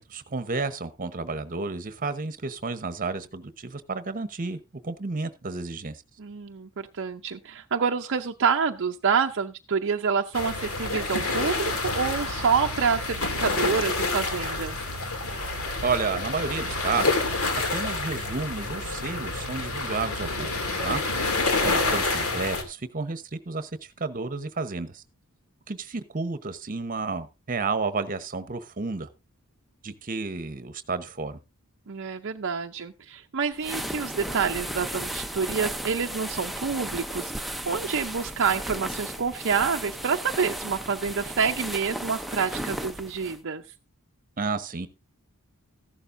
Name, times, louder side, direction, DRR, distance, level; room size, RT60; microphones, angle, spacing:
voice 1, 0.0-6.0 15.8-17.2 17.7-20.5 20.8-21.0 21.6-23.7 24.0-25.0 25.7-29.1 29.8-31.4 44.4-44.9, right 4 dB, 40° right, 1.0 m, -31 dB
voice 2, 6.2-14.8 21.6-21.9 31.9-43.6, right 6 dB, 55° right, 0.6 m, -27 dB
sound 1, 10.3-22.6, left 3 dB, 70° left, 2.5 m, -28 dB
sound 2, 33.6-43.4, right 1 dB, ahead, 0.7 m, -35 dB
14.5 x 11.5 x 2.6 m
head